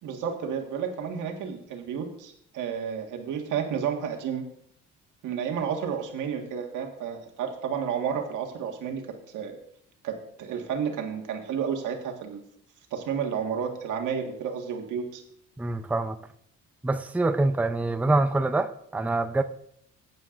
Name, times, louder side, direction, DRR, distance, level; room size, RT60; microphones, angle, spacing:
voice 1, 0.0-4.4 5.2-9.0 9.3-9.6 10.0-12.4 12.9-15.2, right 7 dB, 85° right, 1.6 m, -31 dB
voice 2, 15.6-16.2 16.8-19.4, right 2 dB, 5° right, 0.5 m, -25 dB
14.5 x 9.5 x 2.5 m
cardioid pair, 90°, 30 cm